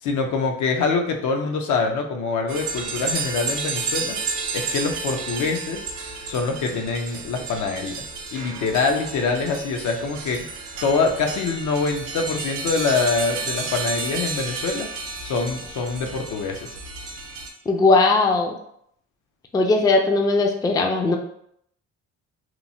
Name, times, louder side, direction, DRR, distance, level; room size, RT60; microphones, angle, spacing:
voice 1, 0.0-4.2 4.5-5.9 6.3-8.0 8.3-10.5 10.8-14.9 15.2-16.8, left 4 dB, 75° left, 4 dB, 0.5 m, -24 dB
sound 1, 2.5-17.5, right 4 dB, 90° right, 0.6 m, -31 dB
voice 2, 17.7-18.5 19.5-21.2, left 3 dB, 15° left, 2 dB, 0.3 m, -18 dB
3.0 x 2.0 x 2.6 m, 0.70 s
cardioid pair, 90°, 30 cm